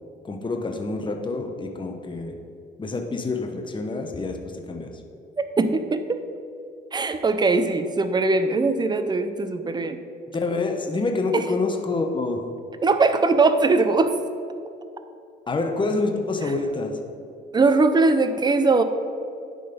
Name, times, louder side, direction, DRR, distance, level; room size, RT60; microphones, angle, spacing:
voice 1, 0.2-2.3 2.8-4.4 4.7-4.9 10.3-12.4 15.5-17.0, left 3 dB, 25° left, 3 dB, 0.9 m, -27 dB
voice 2, 5.6-6.2 6.9-10.0 11.3-11.4 12.8-14.1 17.5-18.8, right 3 dB, 20° right, 9 dB, 0.5 m, -20 dB
10.5 x 4.0 x 5.1 m, 2.5 s
cardioid pair, 90°, 20 cm